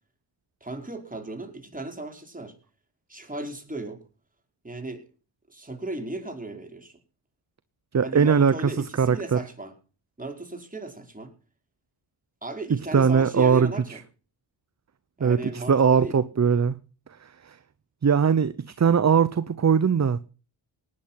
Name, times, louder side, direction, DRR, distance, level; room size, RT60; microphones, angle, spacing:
voice 1, 0.6-2.5 3.1-4.0 4.6-5.1 5.5-6.9 8.0-9.7 10.2-11.3 12.4-14.0 15.2-16.2, right 2 dB, 15° right, 5.2 m, -36 dB
voice 2, 7.9-9.4 12.7-14.0 15.2-16.8 17.2-17.6 18.0-20.2, right 6 dB, 35° right, 1.0 m, -21 dB
18.5 x 10.5 x 5.9 m
cardioid pair, 60°, 50 cm